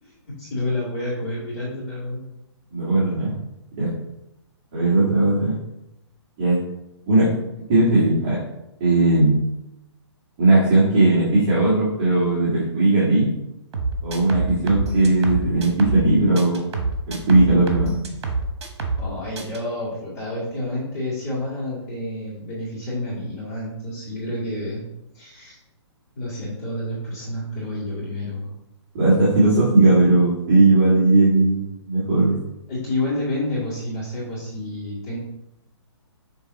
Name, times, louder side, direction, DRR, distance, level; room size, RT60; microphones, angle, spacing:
voice 1, 0.0-2.2 19.0-24.8 25.1-25.6 26.1-28.5 32.7-35.2, left 1 dB, 30° left, -10 dB, 2.1 m, -29 dB
voice 2, 2.7-3.3 3.8-3.9 4.7-5.6 6.4-6.6 7.1-7.4 7.7-8.4 8.8-9.4 10.4-13.3 14.0-16.7 17.1-17.9 28.9-32.4, right 2 dB, 25° right, -8 dB, 1.6 m, -18 dB
sound 1, 13.7-16.1 16.4-19.1 19.4-19.6, right 3 dB, 65° right, 1.3 m, -27 dB
7.1 x 3.4 x 4.0 m, 0.89 s
hypercardioid pair, 170°, 15 cm